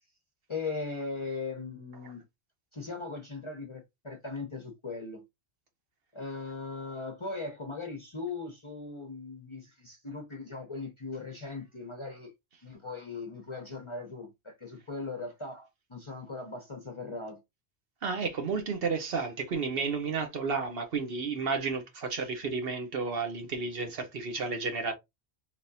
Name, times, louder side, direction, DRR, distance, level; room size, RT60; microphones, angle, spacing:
voice 1, 0.5-2.2 2.7-5.2 6.1-12.3 12.6-17.4, left 3 dB, 35° left, 0.6 m, -39 dB
voice 2, 18.0-24.9, right 4 dB, 60° right, 1.0 m, -32 dB
3.5 x 3.0 x 2.6 m
omnidirectional pair, 1.1 m